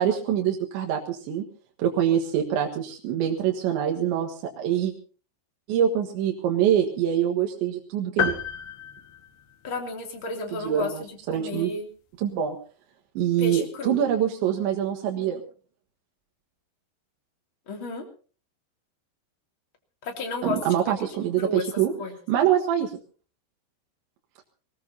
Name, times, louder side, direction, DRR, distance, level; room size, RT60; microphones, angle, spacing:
voice 1, 0.0-1.4 1.8-4.9 5.7-8.4 10.6-10.9 11.3-11.7 12.2-12.6 13.2-15.4 20.4-21.9 22.3-22.9, right 10 dB, 70° right, 2 dB, 3.8 m, -24 dB
sound 1, 8.2-10.0, left 8 dB, 65° left, 3.2 m, -30 dB
voice 2, 9.6-11.9 13.4-14.0 17.7-18.0 20.0-20.9 21.4-21.7 22.0-22.2, left 3 dB, 30° left, 3 dB, 3.0 m, -33 dB
23.0 x 19.0 x 2.9 m, 0.39 s
omnidirectional pair, 5.5 m